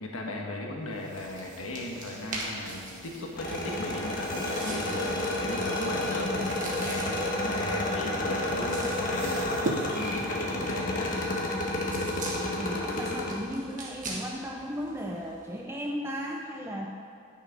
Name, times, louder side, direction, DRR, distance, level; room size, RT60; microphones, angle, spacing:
voice 1, 0.0-6.5 6.8-7.1 7.4-11.1, left 2 dB, 80° left, 0 dB, 1.3 m, -37 dB
sound 1, 0.9-15.6, right 2 dB, 40° right, 1.4 m, -44 dB
sound 2, 0.9-10.7, right 2 dB, 60° right, 0.7 m, -42 dB
sound 3, 3.4-13.3, left 1 dB, 40° left, 1.3 m, -30 dB
voice 2, 12.6-16.9, equal, 10° right, 0 dB, 0.4 m, -35 dB
10.5 x 6.4 x 5.2 m, 2.4 s
head